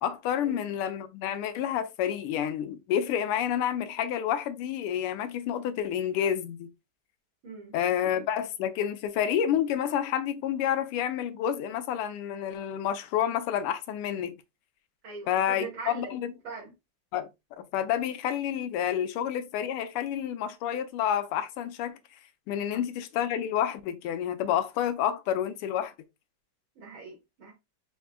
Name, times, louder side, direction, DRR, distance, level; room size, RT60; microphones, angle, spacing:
voice 1, 0.0-6.7 7.7-14.4 15.3-16.3 17.1-17.3 17.6-22.0 22.5-25.9, left 9 dB, 90° left, 1.6 m, -29 dB
voice 2, 7.4-7.7 15.0-16.1 16.4-16.7 26.8-27.5, right 5 dB, 65° right, 2.0 m, -41 dB
5.5 x 3.5 x 2.2 m
omnidirectional pair, 2.4 m